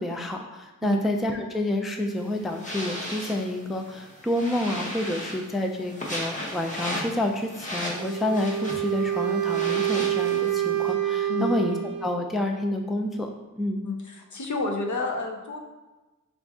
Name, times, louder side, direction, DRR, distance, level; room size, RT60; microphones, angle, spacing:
voice 1, 0.0-13.3 13.6-13.8, left 1 dB, ahead, 3 dB, 0.3 m, -28 dB
sound 1, 2.1-10.9, equal, 25° left, 0.9 m, -36 dB
Wind instrument woodwind instrument, 7.9-12.3, right 12 dB, 75° right, 0.5 m, -27 dB
voice 2, 13.8-15.6, left 4 dB, 65° left, 3 dB, 0.6 m, -29 dB
5.0 x 2.5 x 3.5 m, 1.1 s
wide cardioid pair, 85°, 32 cm